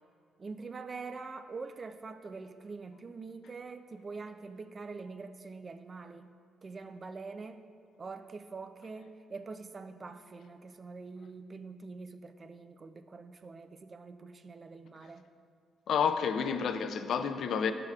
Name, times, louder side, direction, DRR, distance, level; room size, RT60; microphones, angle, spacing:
voice 1, 0.4-6.3 6.6-7.6 8.0-15.2, right 4 dB, 35° right, 0.4 m, -44 dB
voice 2, 15.9-17.7, left 7 dB, 65° left, 0.4 m, -30 dB
11.5 x 6.6 x 2.4 m
cardioid pair, 90°, 0 cm